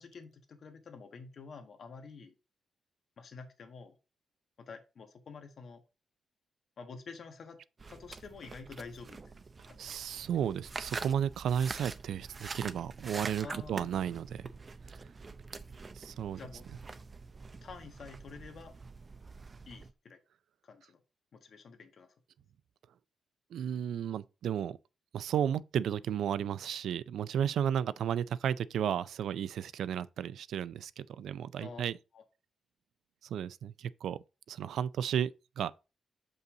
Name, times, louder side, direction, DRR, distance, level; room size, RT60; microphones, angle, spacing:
voice 1, 0.0-2.3 3.2-4.0 4.6-5.8 6.8-7.6 7.9-9.4 9.7-9.9 13.4-13.9 16.4-16.7 17.6-18.7 19.7-20.2 20.6-21.0 21.3-22.1 31.6-31.8 32.1-32.2, left 5 dB, 50° left, 1.5 m, -48 dB
sound 1, 7.8-19.9, right 4 dB, 30° right, 0.5 m, -45 dB
voice 2, 9.8-14.5 15.9-16.4 23.5-24.8 25.1-32.0 33.2-34.2 34.5-35.7, right 9 dB, 80° right, 0.4 m, -33 dB
6.8 x 5.4 x 3.8 m
wide cardioid pair, 155°, 0 cm